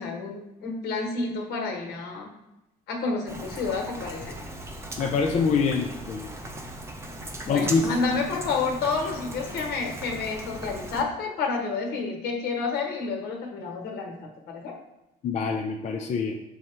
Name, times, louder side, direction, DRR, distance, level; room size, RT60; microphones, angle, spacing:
voice 1, 0.0-2.3 2.9-4.3 7.4-14.7, left 4 dB, 70° left, 2 dB, 1.0 m, -30 dB
Rain, 3.3-11.0, right 1 dB, 15° right, 0.6 m, -38 dB
voice 2, 5.0-6.3 7.5-7.9 15.2-16.3, left 5 dB, 45° left, 2 dB, 0.4 m, -25 dB
5.3 x 2.1 x 4.4 m, 0.94 s
cardioid pair, 110°, 17 cm